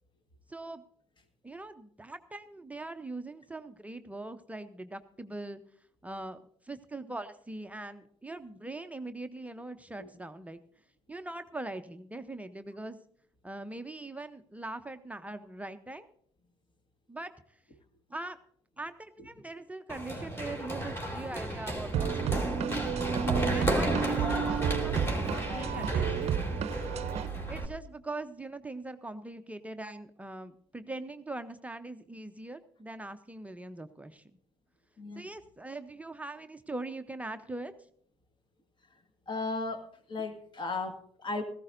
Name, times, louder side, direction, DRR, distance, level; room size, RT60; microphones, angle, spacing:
voice 1, 0.5-0.8 1.4-5.6 6.0-10.6 11.1-13.0 13.4-16.1 17.1-17.3 18.1-18.4 18.8-22.5 23.5-26.3 27.5-34.2 35.2-37.7, right 2 dB, 10° right, 8 dB, 0.7 m, -42 dB
Run, 19.9-27.7, right 1 dB, 15° left, 3.0 m, -33 dB
sound 1, 21.9-27.3, right 7 dB, 45° right, 0.8 m, -31 dB
voice 2, 23.7-24.1 25.5-25.9 35.0-35.3 39.3-41.4, left 3 dB, 30° left, 6 dB, 1.9 m, -37 dB
18.0 x 15.0 x 2.6 m, 0.63 s
hypercardioid pair, 65°, 15 cm